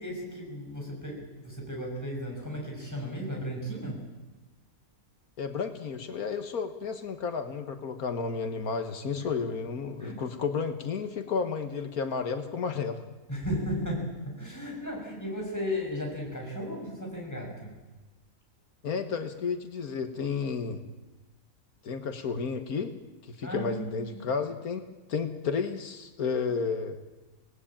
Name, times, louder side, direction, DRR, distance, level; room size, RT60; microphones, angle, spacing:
voice 1, 0.0-4.0 9.2-9.3 10.0-10.2 13.3-17.8 23.4-24.2, equal, 10° left, 0 dB, 6.5 m, -35 dB
voice 2, 5.4-13.0 18.8-20.8 21.8-22.9 23.2-24.8 25.1-27.0, left 5 dB, 85° left, 7 dB, 1.9 m, -32 dB
26.5 x 18.5 x 8.8 m, 1.2 s
omnidirectional pair, 1.5 m